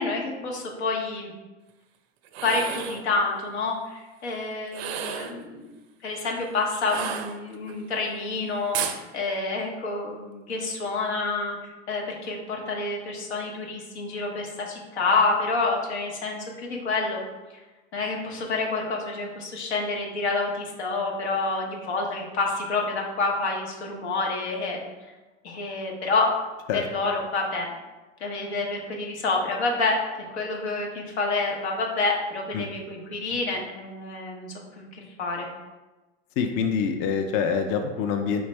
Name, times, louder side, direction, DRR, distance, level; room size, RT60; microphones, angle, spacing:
voice 1, 0.0-1.3 2.4-5.7 6.0-11.6 11.9-17.2 17.9-24.8 25.4-26.3 26.9-27.7 28.2-34.9 35.2-35.5, left 3 dB, 85° left, -1 dB, 1.0 m, -28 dB
sound 1, 2.2-3.1 4.7-5.4 6.8-7.7 8.7-9.0, right 9 dB, 75° right, 0.5 m, -32 dB
voice 2, 36.4-38.4, left 6 dB, 40° left, 5 dB, 0.4 m, -25 dB
4.3 x 3.2 x 3.2 m, 1.1 s
hypercardioid pair, 100°, 33 cm